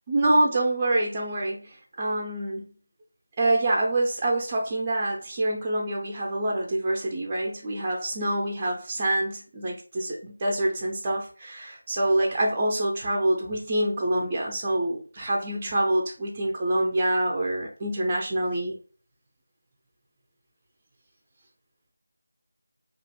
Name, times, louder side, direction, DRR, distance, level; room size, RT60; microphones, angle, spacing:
voice 1, 0.1-2.6 3.4-18.8, right 1 dB, 20° right, -1 dB, 0.4 m, -26 dB
2.4 x 2.0 x 2.8 m, 0.38 s
figure-of-eight pair, 165°, 0 cm